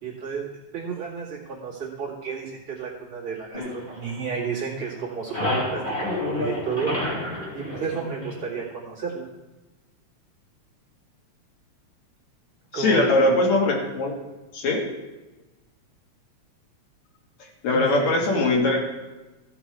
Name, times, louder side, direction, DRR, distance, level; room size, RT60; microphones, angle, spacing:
voice 1, 0.0-0.5 0.7-7.1 7.5-9.3 12.7-13.4 17.7-18.5, right 6 dB, 45° right, -6 dB, 2.8 m, -32 dB
sound 1, 3.5-4.7 5.0-8.7, left 1 dB, 20° left, 2.5 m, -30 dB
voice 2, 12.7-14.1 14.5-14.8 17.6-18.9, left 2 dB, 70° left, 0 dB, 2.8 m, -21 dB
15.5 x 6.1 x 4.6 m, 1.1 s
omnidirectional pair, 3.3 m